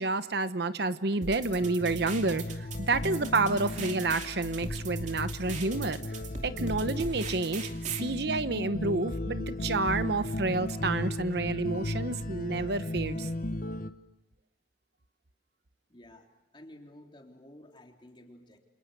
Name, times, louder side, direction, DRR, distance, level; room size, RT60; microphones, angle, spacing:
voice 1, 0.0-6.0 6.4-13.3, right 3 dB, 65° right, 12 dB, 1.0 m, -29 dB
sound 1, 1.2-8.1, right 4 dB, 45° right, 2.7 m, -41 dB
sound 2, 1.4-13.9, left 1 dB, 50° left, 1.0 m, -36 dB
voice 2, 15.9-16.3 16.5-18.6, left 1 dB, 30° left, 2 dB, 3.4 m, -52 dB
29.0 x 27.0 x 6.8 m, 0.99 s
head